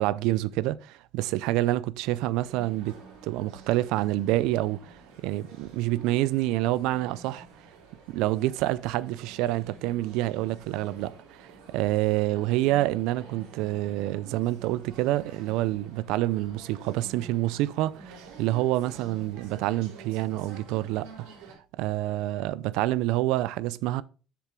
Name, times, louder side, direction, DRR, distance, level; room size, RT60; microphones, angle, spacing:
voice 1, 0.0-3.0 3.2-7.5 8.1-21.1 21.8-24.0, right 16 dB, 70° right, 0.4 m, -27 dB
sound 1, 2.4-21.5, right 4 dB, 90° right, 3.7 m, -49 dB
7.4 x 7.0 x 3.7 m
cardioid pair, 175°, 0 cm